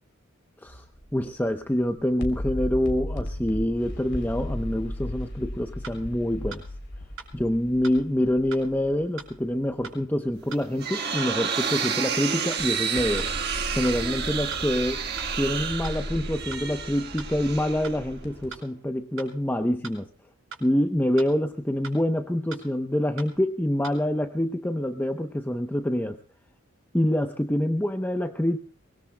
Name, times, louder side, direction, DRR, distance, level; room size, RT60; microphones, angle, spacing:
sound 1, 0.7-1.3 1.6-9.9 10.2-10.3 12.6-18.5, left 1 dB, 60° left, 3.3 m, -36 dB
voice 1, 1.1-6.6 7.3-13.3 13.8-15.0 15.3-20.1 20.6-26.2 26.9-28.6, left 1 dB, 10° left, 6 dB, 0.7 m, -26 dB
sound 2, 5.2-5.3 5.8-6.0 6.5-6.6 7.2-7.3 7.8-8.0 8.5-8.6 9.2-9.3 9.8-10.0 10.5-10.6 11.2-11.3 11.8-12.0 12.5-12.6 13.2-13.3 13.8-14.0 14.5-14.6 15.2-15.3 15.8-16.0 16.5-16.6 17.2-17.3 17.8-18.0 18.5-18.6 19.2-19.3 19.8-20.0 20.5-20.6 21.2-21.3 21.8-22.0 22.5-22.6 23.2-23.3 23.8-24.0, right 5 dB, 90° right, 5.2 m, -41 dB
sound 3, 10.4-18.3, right 7 dB, 50° right, 1.4 m, -30 dB
23.5 x 20.5 x 2.2 m, 0.44 s
head